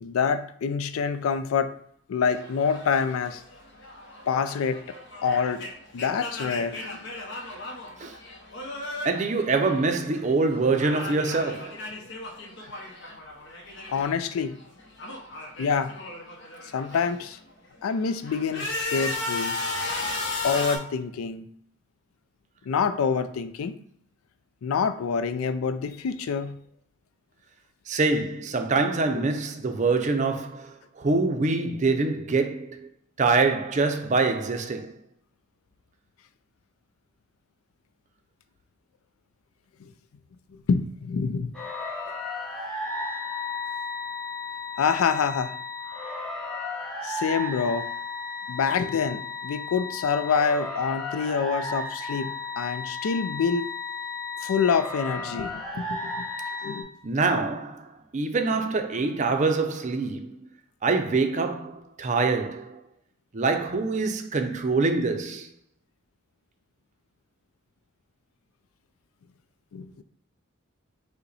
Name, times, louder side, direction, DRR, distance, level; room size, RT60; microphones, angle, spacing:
voice 1, 0.0-1.7 2.1-3.4 4.3-4.8 5.2-5.6 5.9-7.1 13.9-14.6 15.6-15.9 16.7-17.4 17.8-19.6 20.4-21.5 22.7-23.8 24.6-26.6 39.8-39.9 40.7-41.5 44.8-45.6 47.0-47.9 48.5-53.7 54.4-56.3 56.6-56.9 69.7-70.0, left 6 dB, 90° left, 0.4 m, -26 dB
sound 1, 2.2-10.3 10.5-14.3 14.5-17.2 17.7-20.8, left 2 dB, 55° left, 0.8 m, -36 dB
voice 2, 9.0-11.9 27.9-32.9 33.2-35.0 57.0-60.4 60.8-62.8 63.3-65.5, right 3 dB, 35° right, 0.5 m, -25 dB
sound 2, 41.5-56.8, left 3 dB, 5° left, 0.8 m, -34 dB
5.4 x 2.1 x 4.0 m
head